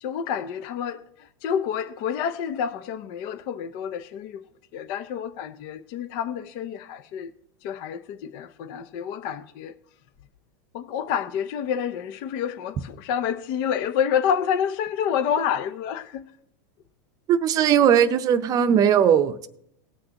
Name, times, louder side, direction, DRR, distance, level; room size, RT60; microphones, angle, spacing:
voice 1, 0.0-4.4 4.7-7.3 7.6-9.7 10.7-16.2, left 8 dB, 50° left, 0.6 m, -28 dB
voice 2, 17.3-19.5, right 8 dB, 35° right, 0.6 m, -19 dB
19.0 x 6.5 x 2.9 m
supercardioid pair, 125°, 11 cm